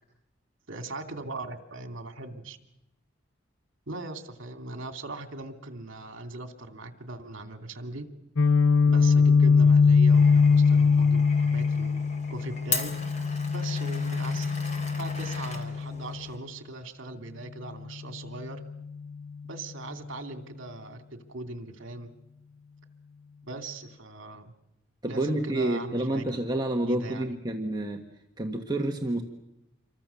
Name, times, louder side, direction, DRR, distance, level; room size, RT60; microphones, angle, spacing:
voice 1, 0.7-2.6 3.9-8.1 8.9-12.0 12.3-12.9 13.5-14.5 15.0-18.6 19.4-22.1 23.4-24.5 25.1-26.4 26.8-27.4, right 2 dB, 70° right, 6 dB, 2.7 m, -39 dB
Guitar, 8.4-16.2, left 5 dB, 75° left, 0.9 m, -22 dB
Glass, 10.1-16.4, left 3 dB, 35° left, 3.5 m, -38 dB
voice 2, 25.0-28.0 28.4-29.2, right 1 dB, 20° right, 2 dB, 1.5 m, -29 dB
28.0 x 23.5 x 7.0 m, 0.89 s
head